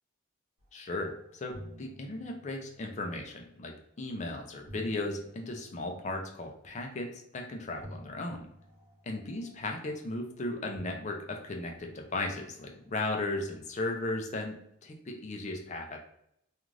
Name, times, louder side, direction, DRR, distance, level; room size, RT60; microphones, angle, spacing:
voice 1, 0.7-8.5 9.0-16.0, left 2 dB, 35° left, 3 dB, 0.4 m, -36 dB
sound 1, 0.9-1.1 1.4-3.7 4.4-6.8 7.8-10.3 10.7-13.3, equal, 55° right, 1.1 m, -51 dB
2.5 x 2.4 x 3.1 m, 0.75 s
head